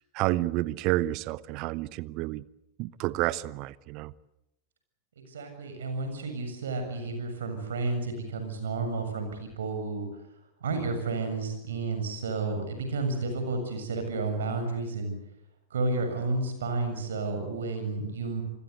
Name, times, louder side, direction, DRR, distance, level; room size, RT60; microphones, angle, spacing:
voice 1, 0.0-2.4 2.8-4.1, right 17 dB, 40° right, 0.9 m, -30 dB
voice 2, 5.2-10.1 10.6-15.1 15.7-18.4, right 3 dB, 65° right, 7.2 m, -31 dB
28.0 x 21.5 x 8.2 m
figure-of-eight pair, 90°, 0 cm